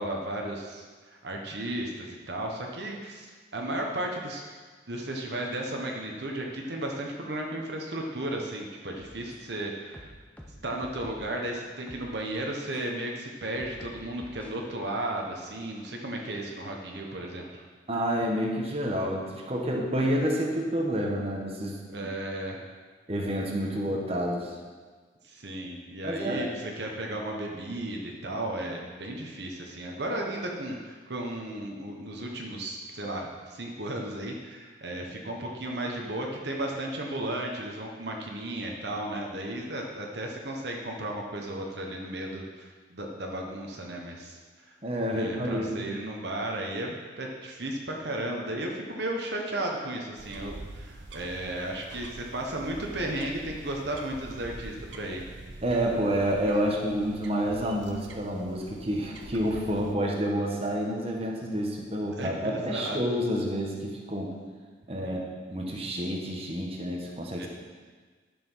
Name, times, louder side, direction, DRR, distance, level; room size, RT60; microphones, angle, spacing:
voice 1, 0.0-3.3 3.5-4.4 4.9-10.1 10.6-17.6 21.9-22.6 25.2-42.4 42.9-44.4 44.6-44.7 45.1-55.2 62.2-63.0 65.0-65.2 67.1-67.5, right 1 dB, 65° right, 0 dB, 1.3 m, -34 dB
sound 1, 9.0-9.6 9.9-11.3 11.9-12.1 12.7-12.8 13.6-14.5, equal, 5° left, 1.0 m, -48 dB
voice 2, 17.9-21.8 23.1-24.5 26.0-26.5 44.8-45.8 55.6-64.3 64.9-67.5, equal, 35° right, -1 dB, 1.4 m, -29 dB
sound 2, 50.2-59.9, right 2 dB, 85° right, 0.9 m, -45 dB
11.0 x 6.9 x 5.6 m, 1.5 s
head